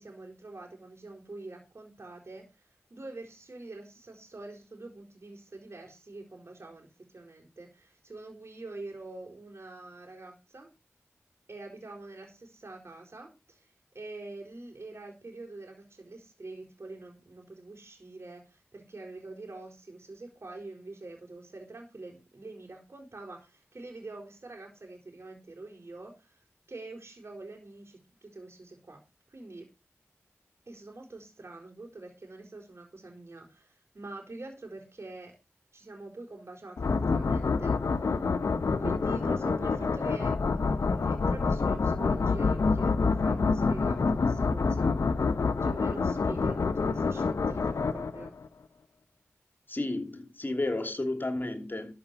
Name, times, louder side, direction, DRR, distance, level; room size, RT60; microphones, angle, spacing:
voice 1, 0.0-10.7 11.5-13.7 13.9-29.0 29.3-29.7 30.7-35.3 35.7-38.3 38.8-45.2 45.6-48.4, right 2 dB, 60° right, 4.4 m, -45 dB
sound 1, 36.8-48.5, left 4 dB, 85° left, 0.9 m, -27 dB
voice 2, 49.7-51.9, left 2 dB, 40° left, 3.0 m, -32 dB
13.0 x 6.2 x 7.1 m
wide cardioid pair, 55°, 5 cm